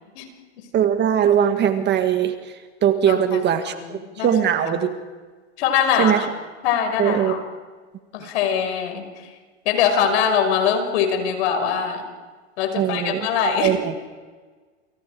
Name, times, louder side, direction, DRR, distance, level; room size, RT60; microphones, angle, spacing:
voice 1, 0.7-2.3 2.8-3.7 4.2-4.9 6.0-6.2 7.0-7.3 12.7-13.3 13.6-13.9, right 9 dB, 30° right, 8 dB, 1.8 m, -20 dB
voice 2, 3.1-3.4 3.7-4.3 4.7-4.9 5.6-6.3 6.6-7.4 8.1-9.3 9.6-12.0 12.6-13.7, left 7 dB, 60° left, 6 dB, 5.8 m, -22 dB
29.0 x 26.0 x 4.9 m, 1.4 s
hypercardioid pair, 125°, 36 cm